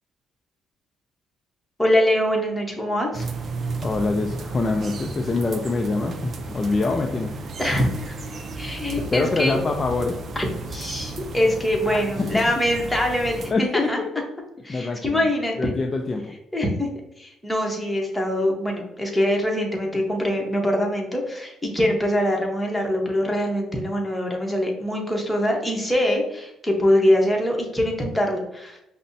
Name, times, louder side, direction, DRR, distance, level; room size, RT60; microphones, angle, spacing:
voice 1, 1.8-3.2 7.6-8.2 8.6-9.6 10.4-10.5 10.7-14.0 14.6-15.7 16.5-28.8, left 1 dB, 10° left, 0 dB, 1.0 m, -23 dB
sound 1, 3.1-13.5, right 2 dB, 50° right, 0.4 m, -34 dB
voice 2, 3.8-7.4 9.1-10.2 11.9-12.0 13.5-14.1 14.7-15.3 15.6-16.4, left 3 dB, 30° left, 3 dB, 0.3 m, -25 dB
5.3 x 2.1 x 2.6 m, 0.84 s
cardioid pair, 90°, 0 cm